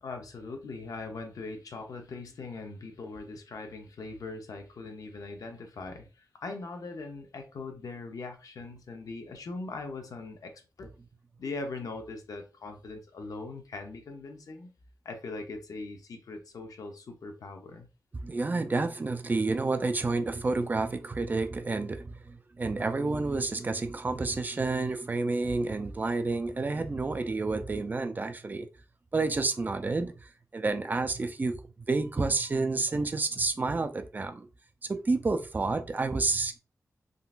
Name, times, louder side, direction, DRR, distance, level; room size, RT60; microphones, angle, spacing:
voice 1, 0.0-10.9 11.4-14.7 15.0-17.9, left 3 dB, 80° left, 0.6 m, -41 dB
voice 2, 18.1-28.7 29.1-31.6 31.9-34.5 34.8-36.6, right 3 dB, 30° right, 0.4 m, -30 dB
3.7 x 2.4 x 2.4 m
wide cardioid pair, 115°, 6 cm